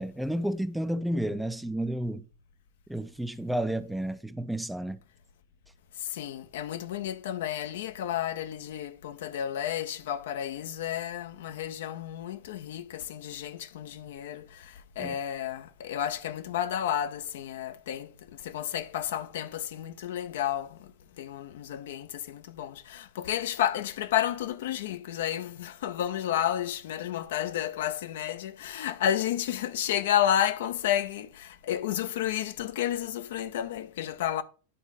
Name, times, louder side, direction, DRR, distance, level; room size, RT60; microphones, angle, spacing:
voice 1, 0.0-2.3 2.9-5.0 15.0-15.2, right 1 dB, 5° right, 0.5 m, -31 dB
voice 2, 6.0-34.4, left 11 dB, 55° left, 0.6 m, -31 dB
9.9 x 4.0 x 4.7 m
figure-of-eight pair, 90°, 0 cm